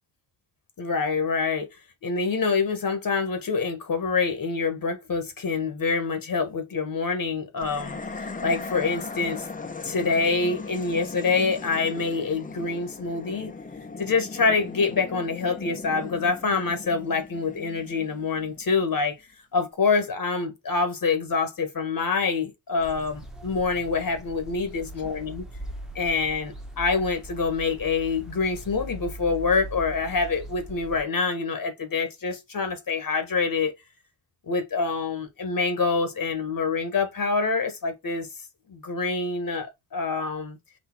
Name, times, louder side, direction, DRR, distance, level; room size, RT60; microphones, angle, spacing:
voice 1, 0.8-1.7 2.0-9.5 9.8-13.5 14.0-19.1 19.5-25.4 25.9-33.7 34.5-38.3 38.7-40.6, left 4 dB, 45° left, 1.2 m, -26 dB
sound 1, 7.6-18.9, left 4 dB, 15° left, 0.8 m, -38 dB
sound 2, 22.8-31.0, right 1 dB, ahead, 1.1 m, -40 dB
4.3 x 2.6 x 4.4 m
cardioid pair, 75°, 47 cm